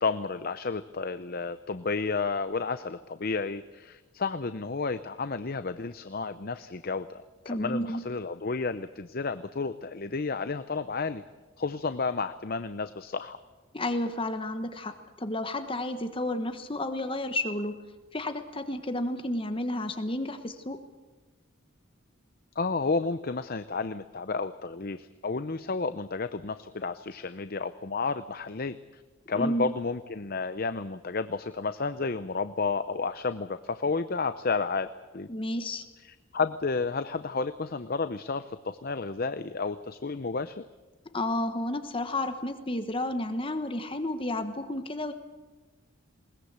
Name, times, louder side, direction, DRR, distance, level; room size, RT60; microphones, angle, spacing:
voice 1, 0.0-11.2 11.6-13.4 22.6-29.0 29.3-34.9 35.1-35.3 36.0-40.6, left 4 dB, 45° left, 12 dB, 0.7 m, -31 dB
voice 2, 7.5-8.0 13.7-17.7 18.1-20.8 29.3-29.7 35.3-35.8 41.1-45.1, left 1 dB, 25° left, 8 dB, 1.2 m, -31 dB
21.0 x 20.0 x 8.1 m, 1.3 s
head